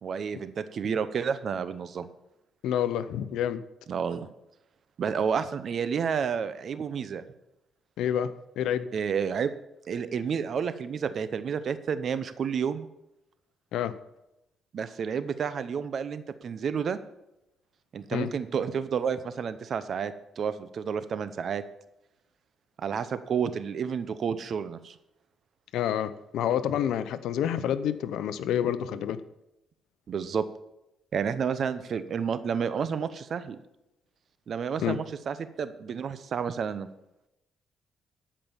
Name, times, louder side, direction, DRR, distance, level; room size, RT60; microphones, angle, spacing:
voice 1, 0.0-2.1 3.9-4.3 5.0-7.2 8.9-9.5 9.9-12.9 14.7-17.0 17.9-21.6 22.8-25.0 30.1-30.4 31.1-33.6 34.5-36.9, right 7 dB, 55° right, 13 dB, 0.8 m, -30 dB
voice 2, 2.6-3.6 8.0-8.3 8.6-8.9 13.7-13.9 18.1-18.3 25.7-29.2 34.8-35.0, left 10 dB, 85° left, 13 dB, 0.7 m, -28 dB
13.5 x 5.6 x 7.1 m, 0.89 s
cardioid pair, 90°, 0 cm